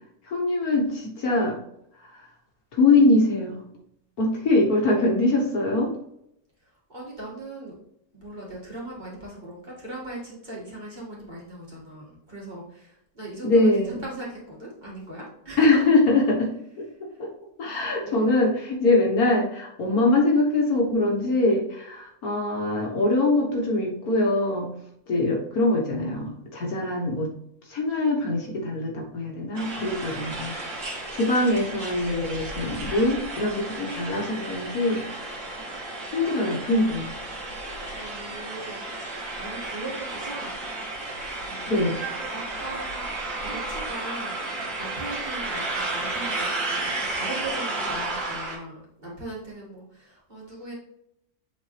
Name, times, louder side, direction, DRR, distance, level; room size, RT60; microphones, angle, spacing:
voice 1, 0.3-1.6 2.1-2.2 2.7-3.6 4.2-5.9 13.4-14.0 15.6-16.5 16.8-16.9 17.2-17.3 17.6-24.7 25.1-27.3 27.7-30.5 31.1-35.0 36.1-37.1 41.7-42.0, left 2 dB, 70° left, 0 dB, 1.8 m, -23 dB
voice 2, 6.9-7.7 8.1-15.8 18.0-18.4 37.8-40.6 41.4-41.9 42.3-43.1 43.4-50.7, right 2 dB, 30° right, -6 dB, 2.3 m, -39 dB
sound 1, 29.5-48.6, right 2 dB, 60° right, 2.2 m, -33 dB
7.6 x 4.6 x 3.3 m, 0.76 s
omnidirectional pair, 1.6 m